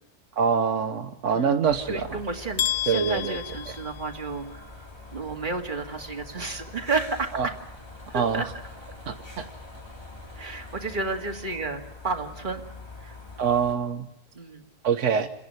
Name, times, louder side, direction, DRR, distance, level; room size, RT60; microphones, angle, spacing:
voice 1, 0.4-2.2 2.9-3.4 7.3-7.5 8.1-8.5 9.1-9.5 13.4-14.1 14.8-15.3, right 6 dB, 85° right, 7 dB, 1.3 m, -25 dB
sound 1, 1.7-13.7, left 3 dB, 20° left, 2.9 m, -44 dB
voice 2, 1.9-7.5 8.1-8.4 10.4-12.6 13.0-13.1 14.3-14.6, right 3 dB, 40° right, 4 dB, 2.2 m, -32 dB
sound 2, 2.6-4.6, left 11 dB, 65° left, 1.4 m, -31 dB
27.5 x 11.0 x 9.8 m, 0.88 s
omnidirectional pair, 1.2 m